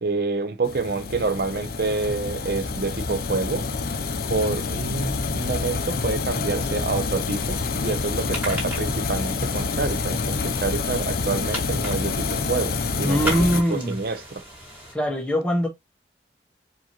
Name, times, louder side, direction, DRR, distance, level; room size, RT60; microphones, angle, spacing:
voice 1, 0.0-3.7 4.3-14.4, right 3 dB, 55° right, 0.7 m, -28 dB
sound 1, 0.6-13.6, left 4 dB, 55° left, 0.6 m, -27 dB
sound 2, 7.3-14.9, equal, 10° right, 2.2 m, -37 dB
voice 2, 13.0-14.0 14.9-15.7, equal, 5° left, 1.3 m, -22 dB
4.7 x 2.9 x 2.9 m
head